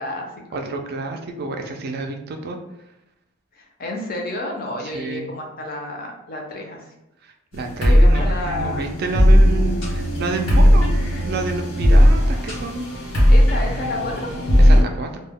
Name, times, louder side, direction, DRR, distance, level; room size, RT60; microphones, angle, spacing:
voice 1, 0.0-0.6 3.5-6.9 7.9-8.9 13.3-14.3, left 1 dB, 45° left, 1 dB, 0.5 m, -31 dB
voice 2, 0.5-2.6 4.9-5.3 7.2-10.9 11.2-12.9 14.6-15.1, right 3 dB, 50° right, 4 dB, 0.3 m, -29 dB
sound 1, 7.5-14.8, equal, 80° left, 1.0 m, -16 dB
2.1 x 2.0 x 3.5 m, 0.89 s
head